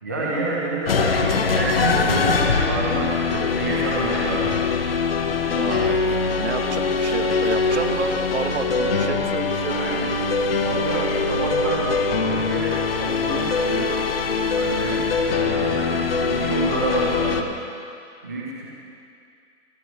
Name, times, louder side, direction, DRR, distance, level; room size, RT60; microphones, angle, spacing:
voice 1, 0.0-4.6 5.4-5.6 9.7-10.1 10.5-17.4 18.2-18.7, right 2 dB, 15° right, -5 dB, 0.6 m, -28 dB
sound 1, 0.9-17.4, left 4 dB, 50° left, 1.0 m, -23 dB
voice 2, 5.5-9.8 15.5-15.7, right 5 dB, 60° right, 7 dB, 1.2 m, -30 dB
sound 2, 8.9-16.7, left 4 dB, 80° left, 2.9 m, -44 dB
29.5 x 9.8 x 3.1 m, 2.4 s
hypercardioid pair, 170°, 38 cm